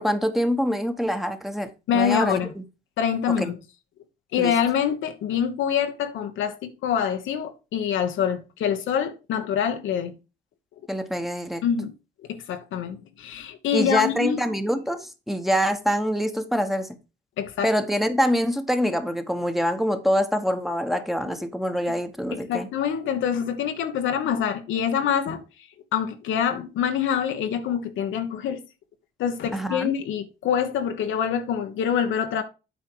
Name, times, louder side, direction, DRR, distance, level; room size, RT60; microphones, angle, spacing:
voice 1, 0.0-2.6 3.4-3.5 4.4-4.5 10.9-11.6 13.7-16.9 17.6-22.7 29.5-29.9, equal, ahead, 1.2 m, -25 dB
voice 2, 1.9-2.5 3.0-3.6 4.3-10.2 11.6-11.9 12.3-14.4 17.4-17.7 21.2-21.4 22.3-25.4 25.9-28.6 29.2-32.4, left 8 dB, 80° left, 1.2 m, -25 dB
8.4 x 4.7 x 4.7 m
cardioid pair, 90°, 20 cm